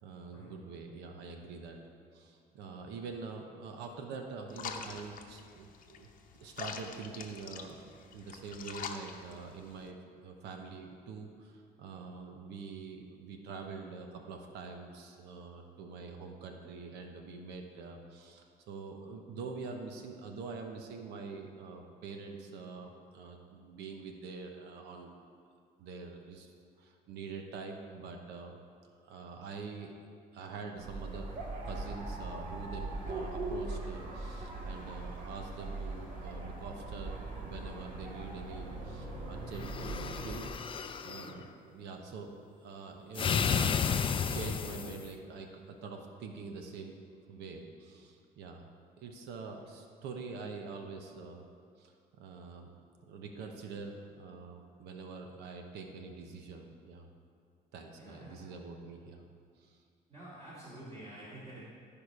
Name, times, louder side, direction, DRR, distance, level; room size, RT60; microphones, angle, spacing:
voice 1, 0.0-1.8 2.1-6.1 6.4-10.0 10.2-25.1 25.8-26.5 26.8-28.5 29.0-29.9 30.3-31.3 31.6-42.3 42.6-43.9 44.3-46.9 47.3-48.7 49.0-51.4 51.8-52.7 53.1-57.1 57.7-59.2 59.6-59.8, right 4 dB, 85° right, 4 dB, 0.9 m, -45 dB
sound 1, 4.5-9.9, left 6 dB, 55° left, 0.8 m, -45 dB
sound 2, 30.7-40.5, right 2 dB, 55° right, 1.8 m, -40 dB
sound 3, 39.6-41.3 43.1-45.1, left 7 dB, 30° left, 0.4 m, -32 dB
voice 2, 58.0-58.4 60.1-61.6, right 1 dB, 35° right, -9 dB, 2.4 m, -49 dB
13.0 x 4.9 x 4.8 m, 2.2 s
cardioid pair, 110°, 17 cm